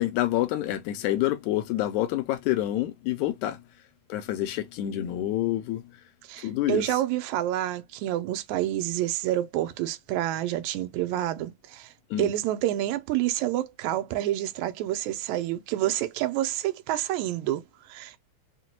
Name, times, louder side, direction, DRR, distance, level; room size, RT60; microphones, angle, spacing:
voice 1, 0.0-3.6 4.1-5.8 6.4-6.8 12.1-12.3, left 14 dB, 80° left, 1.9 m, -27 dB
voice 2, 6.3-11.9 12.2-18.2, right 13 dB, 80° right, 1.7 m, -28 dB
5.8 x 2.3 x 2.8 m
omnidirectional pair, 3.7 m